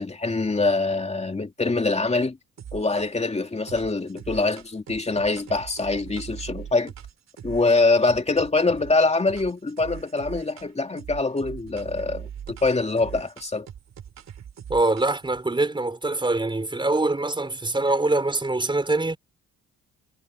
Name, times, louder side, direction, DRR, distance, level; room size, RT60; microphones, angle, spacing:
voice 1, 0.0-2.4 2.7-6.9 7.4-13.7, left 3 dB, 20° left, 2.6 m, -24 dB
sound 1, 2.6-3.3 3.7-8.9 9.3-10.7 11.0-15.4, right 9 dB, 60° right, 4.0 m, -41 dB
voice 2, 14.7-19.2, right 2 dB, 15° right, 5.2 m, -24 dB
cardioid pair, 90°, 30 cm